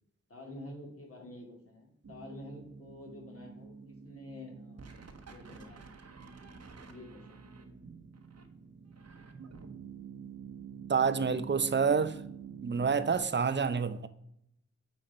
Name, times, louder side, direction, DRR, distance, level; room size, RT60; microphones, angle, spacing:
voice 1, 0.3-3.7 4.0-6.0 6.9-7.7 11.2-11.5, left 1 dB, 50° left, 0 dB, 2.6 m, -49 dB
sound 1, 2.0-13.2, right 6 dB, 60° right, 1.1 m, -48 dB
voice 2, 10.9-12.2 12.6-14.1, right 5 dB, 40° right, 13 dB, 0.7 m, -28 dB
8.8 x 4.1 x 4.2 m, 0.76 s
cardioid pair, 55°, 29 cm